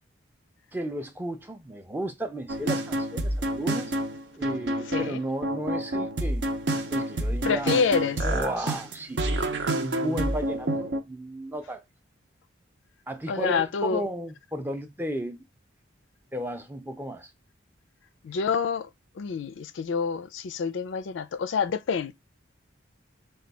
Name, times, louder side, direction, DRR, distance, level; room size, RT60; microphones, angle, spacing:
voice 1, 0.7-3.9 4.4-6.5 6.9-7.8 8.2-11.8 13.1-15.4 16.3-17.3, equal, 10° right, 0.4 m, -34 dB
sound 1, 2.5-11.0, right 1 dB, 65° right, 0.6 m, -28 dB
voice 2, 4.8-5.2 7.4-8.3 13.3-14.0 18.2-18.9 19.1-22.1, left 5 dB, 75° left, 0.4 m, -27 dB
4.3 x 2.3 x 4.0 m
head